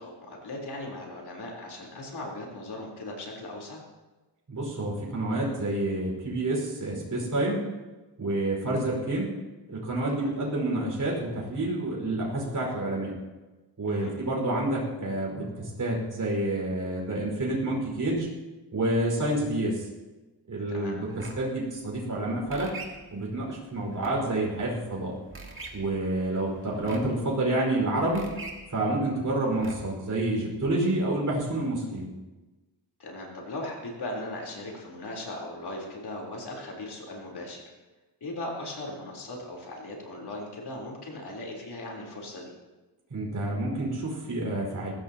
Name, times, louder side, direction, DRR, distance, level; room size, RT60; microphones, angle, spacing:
voice 1, 0.0-3.8 10.1-10.3 13.9-14.1 20.7-21.0 33.0-37.6 38.2-42.5, left 1 dB, 70° left, -2 dB, 3.9 m, -38 dB
voice 2, 4.5-7.6 8.2-9.3 9.7-13.1 13.8-18.3 18.7-19.9 20.5-22.7 23.1-25.1 25.7-28.3 28.7-32.1 43.1-44.9, right 1 dB, 45° right, -3 dB, 5.2 m, -28 dB
sound 1, 21.1-30.1, right 3 dB, 30° right, 2.4 m, -46 dB
21.0 x 16.0 x 2.9 m, 1.2 s
wide cardioid pair, 140°, 41 cm